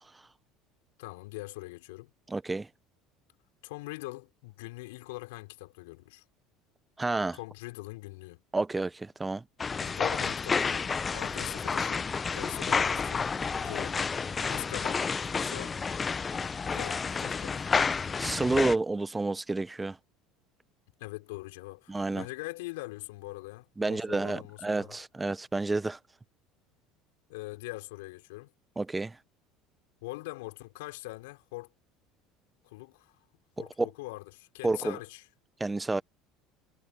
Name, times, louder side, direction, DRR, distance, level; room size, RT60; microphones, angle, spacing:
voice 1, 1.0-2.1 3.6-6.2 7.3-8.4 9.8-12.1 12.3-13.2 13.6-14.0 14.5-15.8 16.7-17.7 21.0-25.0 27.3-28.5 30.0-31.7 32.6-33.2 33.6-35.3, left 22 dB, 75° left, 5.2 m, -42 dB
voice 2, 2.3-2.7 7.0-7.4 8.5-9.4 18.2-20.0 21.9-22.2 23.8-26.0 28.8-29.2 33.6-33.9 34.6-35.0 35.6-36.0, right 3 dB, 15° right, 1.0 m, -30 dB
sound 1, 9.6-18.8, left 5 dB, 30° left, 0.8 m, -30 dB
hypercardioid pair, 75°, 0 cm